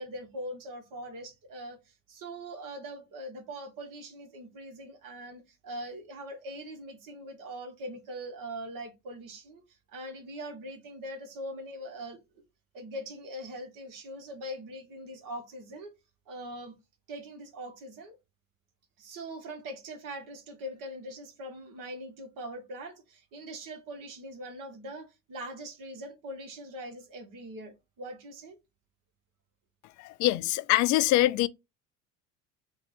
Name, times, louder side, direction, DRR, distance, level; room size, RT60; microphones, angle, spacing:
voice 1, 0.0-12.4 12.7-16.0 16.3-16.7 17.1-18.2 19.0-28.6, right 1 dB, 55° right, 1.4 m, -42 dB
voice 2, 30.0-31.5, left 15 dB, 50° left, 0.5 m, -24 dB
4.4 x 2.4 x 4.3 m
hypercardioid pair, 65°, 40 cm